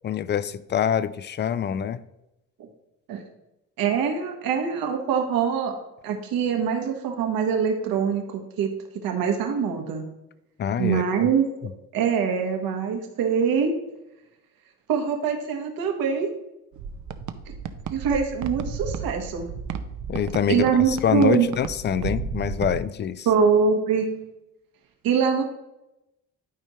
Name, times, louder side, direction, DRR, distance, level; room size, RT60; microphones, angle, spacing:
voice 1, 0.0-2.0 10.6-11.3 11.6-11.7 20.1-23.3, left 9 dB, 30° left, 0.4 m, -25 dB
voice 2, 3.8-5.7 6.0-8.7 9.0-10.0 10.8-11.4 11.9-13.7 14.9-16.3 17.5-17.6 17.9-19.5 20.5-21.5 23.2-24.1 25.0-25.4, right 6 dB, 75° right, 1.4 m, -23 dB
sound 1, 16.7-22.8, right 6 dB, 55° right, 0.7 m, -33 dB
12.0 x 4.4 x 3.1 m
cardioid pair, 90°, 35 cm